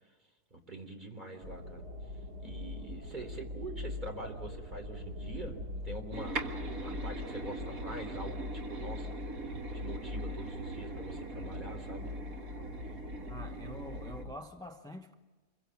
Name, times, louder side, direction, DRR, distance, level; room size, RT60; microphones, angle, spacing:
voice 1, 0.5-1.8 2.4-5.6 5.8-9.2 9.7-12.1, right 2 dB, 30° right, 3 dB, 3.7 m, -44 dB
sound 1, 1.4-14.4, left 2 dB, 85° right, 2.7 m, -42 dB
sound 2, 6.1-14.2, right 3 dB, 60° right, 2.1 m, -42 dB
voice 2, 13.3-15.1, left 1 dB, 5° left, 6 dB, 0.6 m, -46 dB
27.5 x 22.5 x 7.2 m, 1.3 s
omnidirectional pair, 1.7 m